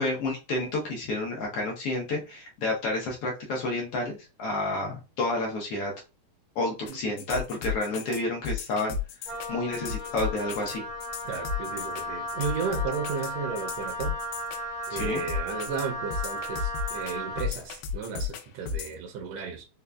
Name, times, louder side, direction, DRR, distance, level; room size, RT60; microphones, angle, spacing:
voice 1, 0.0-5.9 6.5-9.0 9.5-10.8 15.0-15.2, left 2 dB, 65° left, 1.5 m, -30 dB
sound 1, 6.9-18.9, left 6 dB, 85° left, 1.9 m, -34 dB
Wind instrument woodwind instrument, 9.2-17.5, equal, 50° right, 0.8 m, -35 dB
voice 2, 11.2-14.2 14.9-19.7, right 5 dB, 75° right, 1.5 m, -34 dB
5.0 x 2.2 x 2.2 m
omnidirectional pair, 3.3 m